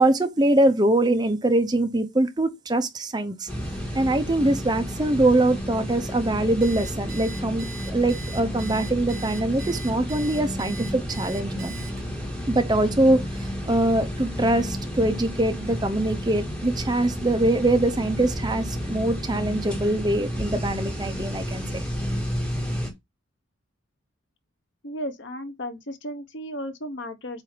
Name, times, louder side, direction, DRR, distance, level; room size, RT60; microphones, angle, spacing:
voice 1, 0.0-3.5 3.9-11.7 12.5-21.8, right 1 dB, 20° right, 0.8 m, -23 dB
sound 1, 3.5-22.9, equal, 5° left, 1.6 m, -31 dB
Alarm, 6.6-12.3, right 6 dB, 45° right, 2.0 m, -41 dB
voice 2, 24.8-27.4, equal, 65° left, 1.0 m, -34 dB
8.1 x 2.8 x 5.0 m
head